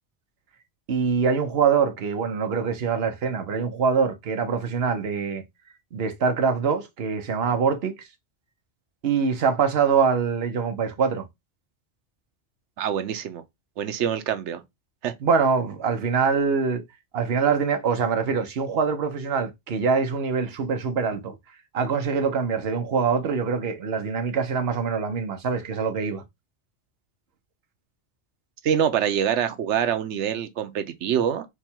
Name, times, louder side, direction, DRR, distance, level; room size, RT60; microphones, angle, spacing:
voice 1, 0.9-5.4 5.9-8.0 9.0-11.3 15.2-16.8 17.1-21.4 21.7-26.2, right 6 dB, 60° right, 1.0 m, -24 dB
voice 2, 12.8-13.4 13.8-14.6 15.0-15.1 28.6-31.5, right 9 dB, 85° right, 0.9 m, -25 dB
4.7 x 2.3 x 4.3 m
omnidirectional pair, 1.2 m